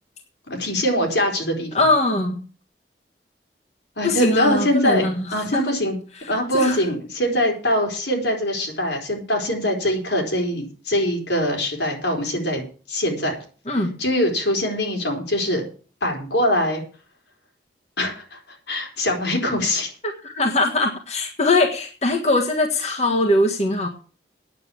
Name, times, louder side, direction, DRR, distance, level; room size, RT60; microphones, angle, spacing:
voice 1, 0.5-1.7 4.0-6.0 6.3-12.6 12.9-13.4 14.0-15.6 16.0-16.8 18.0-18.4 18.7-19.9, equal, 85° left, 2 dB, 4.1 m, -23 dB
voice 2, 1.7-2.4 4.0-5.6 6.2-6.8 13.7-13.9 20.2-23.9, left 2 dB, 40° left, 1 dB, 1.5 m, -21 dB
9.5 x 7.8 x 8.5 m, 0.39 s
head